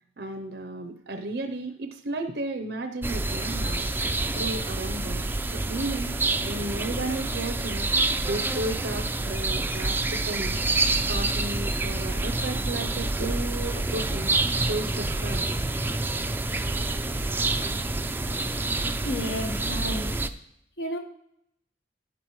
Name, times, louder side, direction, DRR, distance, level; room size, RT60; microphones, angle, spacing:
voice 1, 0.2-3.9 4.3-5.3 5.5-7.9 8.2-10.6 11.1-14.3 14.6-15.6, right 2 dB, 70° right, 6 dB, 0.7 m, -34 dB
sound 1, 3.0-20.3, right 2 dB, 10° right, 0.4 m, -27 dB
voice 2, 19.0-20.1 20.8-21.0, left 1 dB, 65° left, 3 dB, 1.4 m, -31 dB
13.0 x 9.5 x 3.1 m, 0.75 s
head